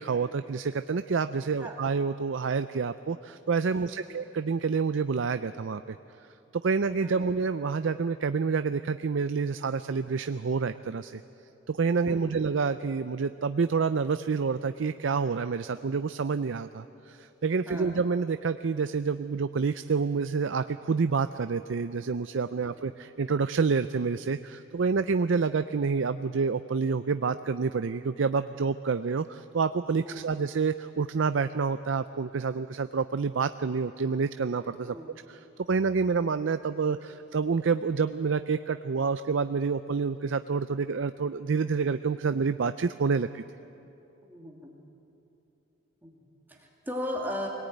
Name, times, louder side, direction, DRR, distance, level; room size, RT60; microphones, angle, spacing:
voice 1, 0.0-6.0 6.5-11.2 11.7-35.0 35.3-43.4, right 5 dB, 70° right, 11 dB, 0.5 m, -28 dB
voice 2, 3.7-4.2 7.0-7.3 12.1-12.5 17.7-18.0 22.6-22.9 30.0-30.3 34.9-35.2 44.3-44.8 46.0-47.5, left 1 dB, 10° right, -1 dB, 2.5 m, -38 dB
25.0 x 18.5 x 9.2 m, 2.9 s
head